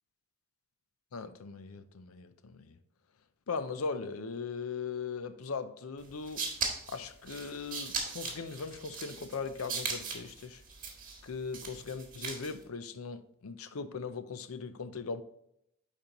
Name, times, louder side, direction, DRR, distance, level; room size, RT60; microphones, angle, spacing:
voice 1, 1.1-2.8 3.5-6.5 6.9-10.6 11.2-15.2, left 5 dB, 85° left, 0.6 m, -39 dB
sound 1, 6.0-12.6, right 5 dB, 40° right, 1.7 m, -39 dB
10.5 x 4.2 x 3.0 m
head